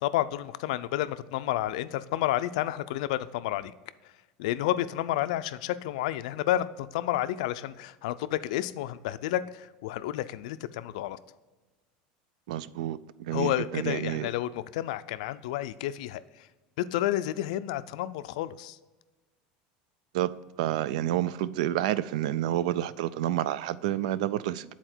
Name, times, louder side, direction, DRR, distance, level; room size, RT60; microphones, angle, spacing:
voice 1, 0.0-3.7 4.4-11.2 13.3-16.5 16.8-18.8, left 13 dB, 80° left, 0.3 m, -30 dB
voice 2, 12.5-14.3 20.1-20.3 20.6-24.7, right 12 dB, 85° right, 0.3 m, -29 dB
7.9 x 4.2 x 4.4 m
supercardioid pair, 135°, 4 cm